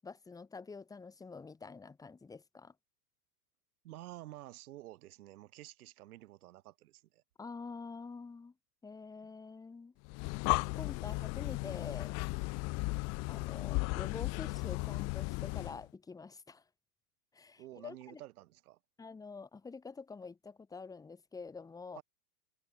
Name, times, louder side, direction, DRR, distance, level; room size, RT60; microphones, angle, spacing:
voice 1, 0.0-2.7 7.4-8.5 8.8-9.9 10.5-12.2 13.3-16.6 17.3-18.2 19.0-22.0, left 4 dB, 10° left, 0.9 m, -47 dB
voice 2, 3.8-7.2 17.6-18.8 21.9-22.0, right 15 dB, 65° right, 6.0 m, -51 dB
Breathing, 10.0-15.8, left 29 dB, 35° left, 0.6 m, -35 dB
hypercardioid pair, 105°, 47 cm